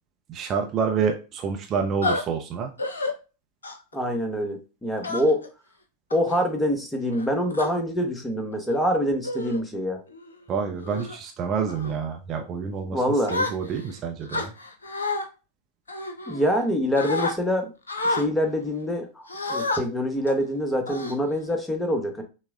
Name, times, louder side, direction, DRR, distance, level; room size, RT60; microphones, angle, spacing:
voice 1, 0.3-2.7 10.5-13.0 13.3-14.5, right 6 dB, 30° right, 3 dB, 0.5 m, -28 dB
sound 1, 2.0-2.2 2.8-3.1 3.6-3.9 5.0-5.5 6.1-6.4 7.1-7.7 8.5-8.7 9.2-9.6 10.1-10.3 10.8-11.2 11.7-11.9 13.3-13.9 14.3-15.2 15.9-16.7 17.0-17.3 17.9-18.3 19.3-19.8 20.3-20.4 20.9-21.5, left 2 dB, 75° left, 0.6 m, -29 dB
voice 2, 3.9-5.4 6.1-10.0 12.9-13.4 16.3-17.7 18.0-22.2, equal, 10° left, 4 dB, 0.8 m, -25 dB
5.8 x 2.0 x 2.3 m, 0.32 s
figure-of-eight pair, 90°, 0 cm